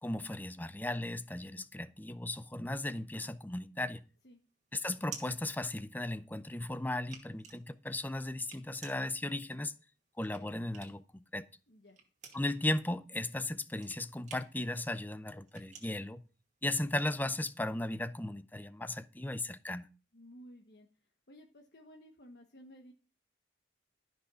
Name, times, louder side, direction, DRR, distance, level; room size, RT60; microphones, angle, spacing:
voice 1, 0.0-4.0 4.7-9.7 10.2-11.5 12.3-16.2 16.6-19.9, left 1 dB, 10° left, 0.5 m, -36 dB
sound 1, 4.0-6.3 6.7-11.2 11.5-17.0, right 6 dB, 40° right, 2.1 m, -52 dB
voice 2, 11.7-12.0 20.1-20.9 21.3-22.9, equal, 55° left, 1.3 m, -55 dB
13.0 x 6.2 x 5.5 m
head